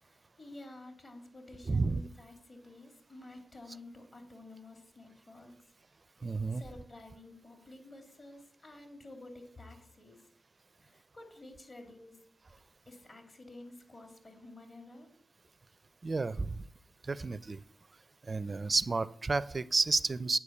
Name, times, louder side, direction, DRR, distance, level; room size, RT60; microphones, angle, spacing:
voice 1, 0.0-5.5 6.1-6.2 6.5-10.2 10.8-12.2 12.9-15.1, left 2 dB, 50° left, 4 dB, 2.7 m, -51 dB
voice 2, 1.7-2.0 6.2-6.6 16.0-16.6 17.0-17.6 18.2-20.4, right 3 dB, 45° right, 17 dB, 0.4 m, -31 dB
8.6 x 4.6 x 6.8 m, 0.65 s
cardioid pair, 45°, 0 cm